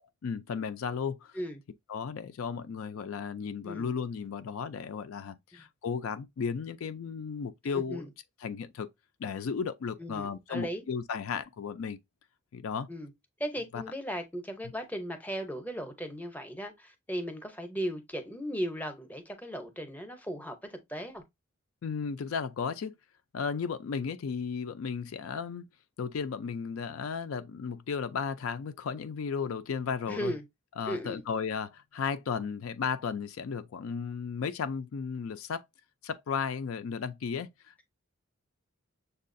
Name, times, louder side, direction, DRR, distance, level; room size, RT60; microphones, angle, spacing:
voice 1, 0.2-1.4 1.9-8.0 8.4-8.9 9.2-12.0 12.5-12.9 13.7-13.8 21.8-22.9 23.3-25.7 26.0-30.3 30.8-35.6 36.0-37.9, left 6 dB, 75° left, 0.4 m, -34 dB
voice 2, 7.7-8.1 10.0-10.8 12.9-13.1 13.4-21.2 30.1-30.4 30.9-31.2, equal, 10° left, 0.6 m, -37 dB
6.4 x 2.3 x 2.5 m
head